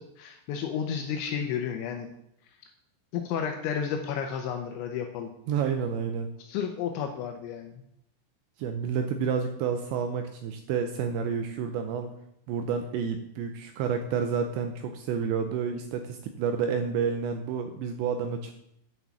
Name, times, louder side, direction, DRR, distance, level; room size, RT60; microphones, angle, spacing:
voice 1, 0.0-2.1 3.1-5.3 6.4-7.8, left 7 dB, 80° left, 4 dB, 2.9 m, -32 dB
voice 2, 5.5-6.3 8.6-12.1 12.5-18.5, right 6 dB, 85° right, 6 dB, 2.6 m, -29 dB
9.1 x 6.1 x 7.0 m, 0.77 s
omnidirectional pair, 5.7 m